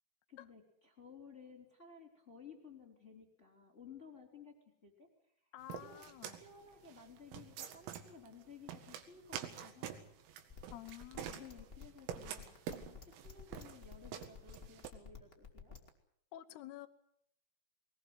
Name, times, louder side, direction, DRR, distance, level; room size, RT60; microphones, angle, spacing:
voice 1, 0.3-4.5 4.8-5.1 5.7-10.0 10.3-10.5 11.3-15.7, left 5 dB, 15° left, 2 dB, 2.8 m, -56 dB
voice 2, 5.5-6.4 10.7-11.4 16.3-16.9, left 14 dB, 75° left, 11 dB, 2.4 m, -50 dB
sound 1, 5.7-14.9, right 9 dB, 80° right, 4.5 m, -47 dB
sound 2, 10.5-15.9, left 6 dB, 40° left, 0.8 m, -52 dB
21.5 x 20.0 x 8.0 m, 0.70 s
omnidirectional pair, 5.9 m